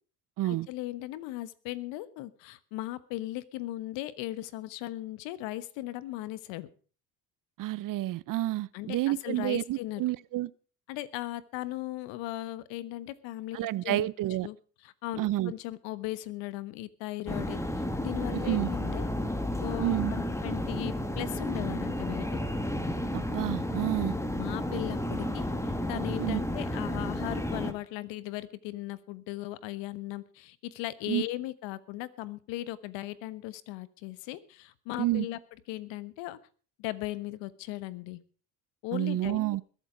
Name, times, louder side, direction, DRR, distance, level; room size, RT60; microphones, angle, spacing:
voice 1, 0.4-6.7 8.7-10.0 10.9-14.1 14.4-14.6 14.8-19.1 19.6-22.3 22.8-22.9 24.4-35.4 35.7-36.4 36.8-38.2 38.8-39.4, left 16 dB, 65° left, 1.3 m, -38 dB
voice 2, 7.6-10.5 13.5-14.5 15.2-15.5 18.3-18.7 19.8-20.1 23.1-24.2 26.2-26.4 31.1-31.2 35.0-35.3 38.9-39.6, right 15 dB, 45° right, 0.6 m, -29 dB
sound 1, 17.3-27.7, left 1 dB, 5° left, 1.9 m, -32 dB
21.5 x 8.0 x 5.1 m
hypercardioid pair, 75°, 47 cm